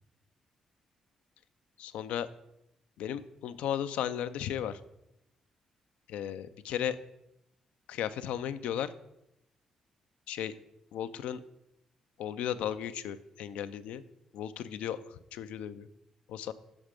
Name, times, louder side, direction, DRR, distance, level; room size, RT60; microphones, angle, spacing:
voice 1, 1.8-2.3 3.0-4.8 6.1-7.0 7.9-8.9 10.3-10.5 10.9-11.4 12.2-14.0 14.3-15.0 15.3-15.9 16.3-16.5, left 10 dB, 75° left, 12 dB, 0.4 m, -35 dB
6.5 x 6.1 x 5.1 m, 0.83 s
hypercardioid pair, 45°, 2 cm